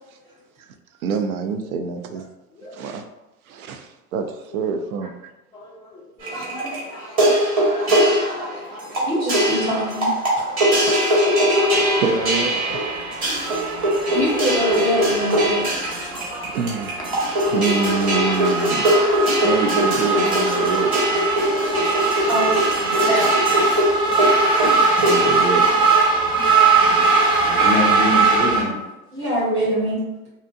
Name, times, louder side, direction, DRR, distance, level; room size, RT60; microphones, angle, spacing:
voice 1, 1.0-2.3 2.7-3.0 3.5-5.1 6.3-6.5 10.8-11.2 11.7-12.9 16.5-18.9 19.4-20.9 25.0-25.6, right 5 dB, 70° right, 6 dB, 0.5 m, -26 dB
voice 2, 2.5-2.9 4.5-4.7 5.5-6.3 13.2-13.3 19.2-19.4 20.2-20.6 21.5-21.7 22.1-22.5 24.4-25.5 26.2-26.4 26.8-26.9 27.4-28.8, left 2 dB, 10° left, -4 dB, 0.3 m, -30 dB
sound 1, 6.2-25.3, equal, 30° right, 1.1 m, -21 dB
voice 3, 9.0-10.2 14.1-15.7 22.3-22.6 22.8-23.7 27.1-27.5 29.1-30.0, equal, 90° right, -9 dB, 1.2 m, -24 dB
sound 2, 11.7-28.6, right 4 dB, 10° right, 0.8 m, -21 dB
2.7 x 2.1 x 2.5 m, 1.0 s
figure-of-eight pair, 85°, 45 cm